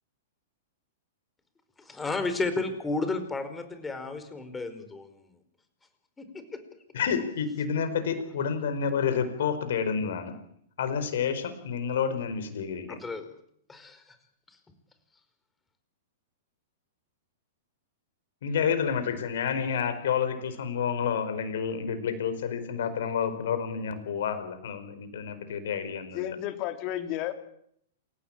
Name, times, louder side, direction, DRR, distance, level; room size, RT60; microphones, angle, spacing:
voice 1, 1.8-5.2 6.2-6.3 12.9-13.2 13.7-14.2, left 3 dB, 10° left, 9 dB, 4.9 m, -32 dB
voice 2, 6.9-10.3 10.8-13.0 18.4-26.2, left 7 dB, 60° left, 11 dB, 4.5 m, -29 dB
voice 3, 26.1-27.3, left 12 dB, 40° left, 8 dB, 3.3 m, -32 dB
28.0 x 16.0 x 8.8 m, 0.70 s
figure-of-eight pair, 105°, 0 cm